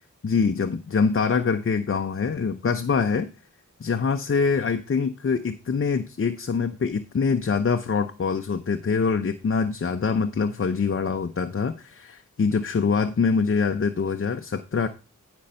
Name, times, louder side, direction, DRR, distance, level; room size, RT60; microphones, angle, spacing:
voice 1, 0.2-3.3 3.8-14.9, left 5 dB, 45° left, 8 dB, 0.7 m, -24 dB
10.5 x 5.3 x 5.5 m, 0.31 s
wide cardioid pair, 85°, 31 cm